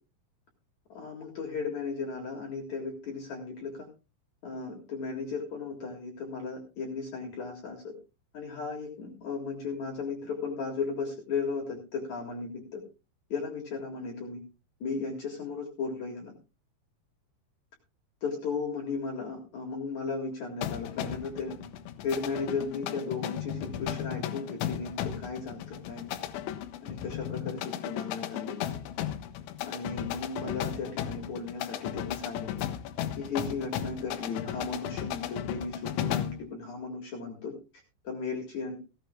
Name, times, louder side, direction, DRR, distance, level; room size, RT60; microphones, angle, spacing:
voice 1, 0.9-3.9 4.4-7.9 8.3-12.8 13.3-14.4 14.8-16.3 18.2-21.6 22.0-26.2 26.8-28.8 29.6-32.7 33.2-37.5 38.0-38.8, left 4 dB, 50° left, 1 dB, 2.4 m, -35 dB
sound 1, 20.6-36.5, left 11 dB, 75° left, 3.1 m, -35 dB
16.0 x 16.0 x 2.3 m, 0.30 s
omnidirectional pair, 5.8 m